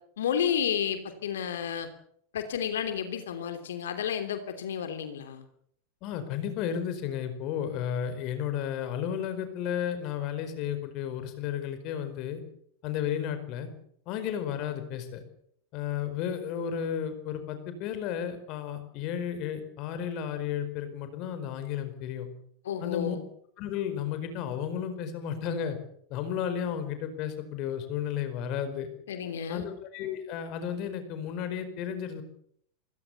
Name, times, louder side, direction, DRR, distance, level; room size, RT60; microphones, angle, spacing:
voice 1, 0.2-1.9 2.3-5.4 22.6-23.2 29.1-29.6, left 8 dB, 60° left, 8 dB, 3.0 m, -31 dB
voice 2, 6.0-12.4 12.8-13.7 14.1-15.2 15.7-22.3 22.8-23.2 23.6-25.8 26.1-28.9 29.5-32.2, left 9 dB, 40° left, 10 dB, 4.7 m, -33 dB
26.5 x 20.5 x 7.1 m, 0.68 s
figure-of-eight pair, 90°, 0 cm